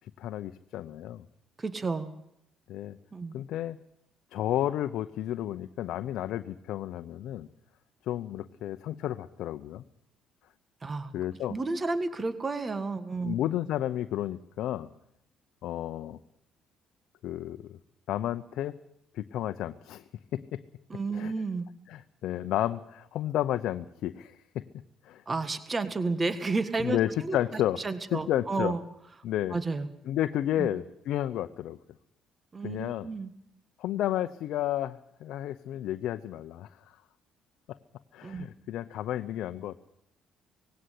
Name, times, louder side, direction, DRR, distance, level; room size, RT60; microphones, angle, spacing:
voice 1, 0.2-1.3 2.7-3.0 3.3-3.8 4.3-7.5 8.1-9.8 11.1-11.5 13.2-14.9 15.6-16.2 17.2-17.8 18.1-18.7 19.1-20.0 20.3-20.6 21.1-21.3 21.9-24.7 25.0-25.2 26.8-27.8 28.1-28.7 29.2-29.6 30.1-31.8 32.6-33.1 33.8-36.7 38.1-39.8, left 12 dB, 75° left, 9 dB, 0.8 m, -32 dB
voice 2, 1.6-2.1 3.1-3.4 10.8-11.1 11.5-13.3 20.9-21.7 25.2-28.8 29.5-29.9 30.6-30.7 32.5-33.3 38.2-38.5, right 3 dB, 30° right, 12 dB, 1.6 m, -31 dB
19.5 x 17.0 x 8.4 m, 0.77 s
cardioid pair, 85°, 0 cm